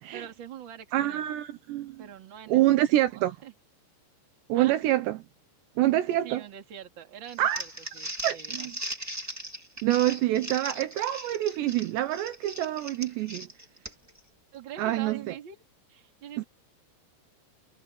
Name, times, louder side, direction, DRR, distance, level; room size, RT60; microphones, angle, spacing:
voice 1, 0.1-1.3 2.0-2.6 2.9-3.5 4.5-4.8 6.2-8.7 14.5-15.6 15.9-16.4, right 9 dB, 35° right, 2.4 m, -44 dB
voice 2, 0.9-2.0 2.5-3.4 4.5-5.2 5.8-6.4 7.4-7.6 8.2-8.7 9.8-13.5 14.8-15.3 16.4-16.5, right 14 dB, 75° right, 3.0 m, -26 dB
Crumpling crinkling, 7.3-14.2, right 1 dB, 5° right, 1.4 m, -38 dB
omnidirectional pair, 5.4 m